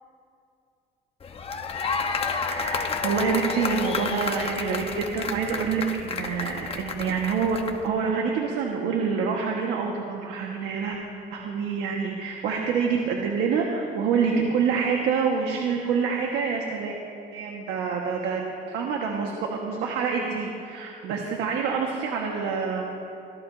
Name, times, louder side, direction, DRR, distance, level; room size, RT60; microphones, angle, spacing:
sound 1, 1.2-7.9, left 5 dB, 35° left, 1.2 m, -31 dB
voice 1, 2.5-7.6 7.8-11.0 11.3-17.0 17.3-22.9, right 5 dB, 90° right, 0 dB, 1.7 m, -27 dB
25.0 x 17.5 x 2.8 m, 2.6 s
cardioid pair, 110°, 17 cm